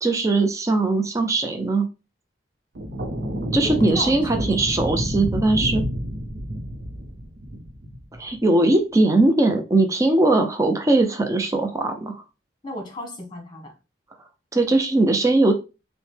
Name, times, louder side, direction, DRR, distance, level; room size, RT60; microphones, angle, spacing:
voice 1, 0.0-1.9 3.5-5.8 8.2-12.2 14.5-15.5, right 2 dB, 20° right, 0.5 m, -20 dB
sound 1, 2.8-8.4, equal, 75° right, 0.7 m, -29 dB
voice 2, 3.6-4.7 12.6-13.7, left 1 dB, 25° left, 1.2 m, -35 dB
5.7 x 2.1 x 3.3 m
head